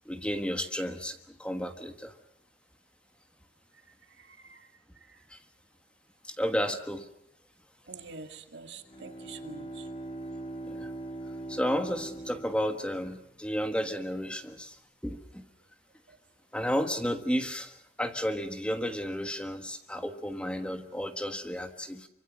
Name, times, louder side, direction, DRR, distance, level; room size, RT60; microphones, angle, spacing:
voice 1, 0.0-2.1 5.3-5.4 6.2-7.1 10.6-10.9 11.5-14.8 15.0-15.4 16.5-22.1, equal, 5° left, 7 dB, 1.4 m, -32 dB
voice 2, 4.2-4.7 5.1-5.2 7.9-9.9 16.1-16.2, right 4 dB, 75° right, 7 dB, 2.1 m, -46 dB
Bowed string instrument, 8.8-13.5, right 2 dB, 30° left, 2.3 m, -41 dB
26.5 x 25.0 x 6.6 m, 0.75 s
head